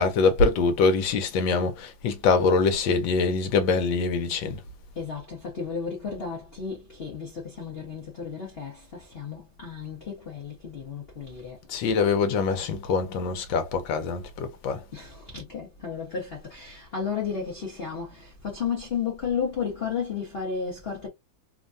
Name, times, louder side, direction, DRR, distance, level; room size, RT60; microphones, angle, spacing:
voice 1, 0.0-4.6 11.7-14.8, left 4 dB, 75° left, 1.4 m, -24 dB
voice 2, 5.0-11.6 14.9-21.1, left 6 dB, 45° left, 0.8 m, -33 dB
3.4 x 2.2 x 2.5 m
omnidirectional pair, 2.1 m